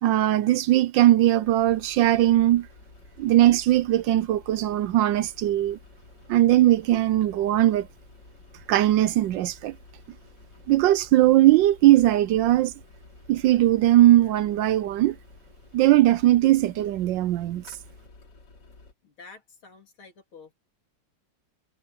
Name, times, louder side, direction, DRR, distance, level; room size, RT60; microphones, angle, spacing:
voice 1, 0.0-2.7 3.2-5.8 6.3-7.9 8.7-9.7 10.7-12.7 13.3-15.2 15.7-17.6, right 14 dB, 75° right, 1.1 m, -19 dB
sound 1, 1.4-18.9, left 3 dB, 50° left, 3.6 m, -51 dB
voice 2, 19.0-20.5, left 4 dB, 70° left, 4.2 m, -49 dB
omnidirectional pair, 2.4 m